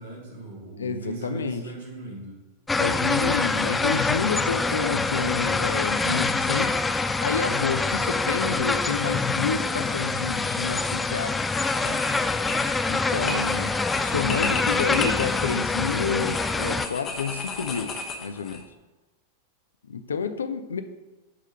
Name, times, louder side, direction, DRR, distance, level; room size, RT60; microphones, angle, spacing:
voice 1, 0.0-2.4, right 3 dB, 55° right, -2 dB, 1.9 m, -38 dB
voice 2, 0.8-1.6 2.7-6.8 7.2-11.4 11.8-12.3 12.8-17.9 18.2-18.7 19.8-20.8, left 5 dB, 70° left, 10 dB, 0.5 m, -29 dB
sound 1, 2.7-16.9, left 3 dB, 10° left, 0.3 m, -25 dB
sound 2, 10.7-11.0 11.4-18.6, left 4 dB, 30° left, 0.9 m, -35 dB
8.5 x 3.7 x 5.6 m, 1.1 s
figure-of-eight pair, 90°, 0 cm